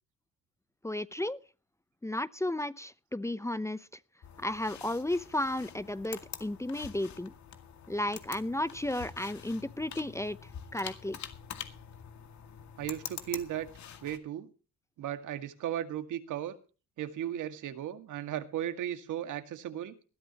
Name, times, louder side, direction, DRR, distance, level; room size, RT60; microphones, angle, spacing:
voice 1, 0.8-1.4 2.0-3.9 4.4-7.3 7.9-10.4 10.7-11.2, left 1 dB, 10° left, 0.7 m, -33 dB
sound 1, 4.2-14.2, left 8 dB, 65° left, 2.1 m, -46 dB
voice 2, 12.8-13.7 14.0-14.5 15.0-16.6 17.0-19.9, right 11 dB, 80° right, 2.1 m, -36 dB
20.0 x 13.0 x 3.0 m
cardioid pair, 90°, 30 cm